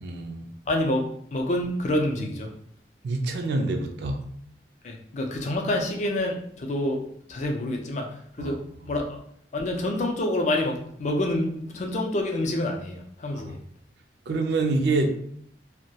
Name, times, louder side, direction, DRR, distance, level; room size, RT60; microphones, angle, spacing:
voice 1, 0.0-0.5 3.0-4.2 8.4-8.6 14.3-15.1, right 3 dB, 65° right, 4 dB, 0.3 m, -26 dB
voice 2, 0.7-1.0 1.3-2.5 4.8-7.0 7.3-8.6 8.8-9.2 9.5-13.6, left 1 dB, 40° left, 1 dB, 0.4 m, -27 dB
2.2 x 2.1 x 2.7 m, 0.65 s
head